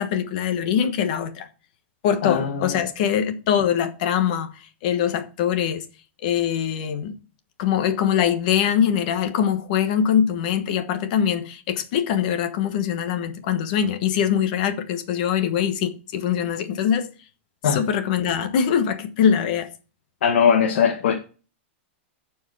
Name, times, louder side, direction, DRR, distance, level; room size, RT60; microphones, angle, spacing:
voice 1, 0.0-1.5 2.0-5.9 6.2-7.2 7.6-17.1 17.6-19.7, left 8 dB, 40° left, 1.2 m, -23 dB
voice 2, 2.2-2.6 17.6-17.8 20.2-21.1, left 7 dB, 60° left, 1.4 m, -19 dB
14.0 x 4.9 x 4.7 m
supercardioid pair, 175°, 7 cm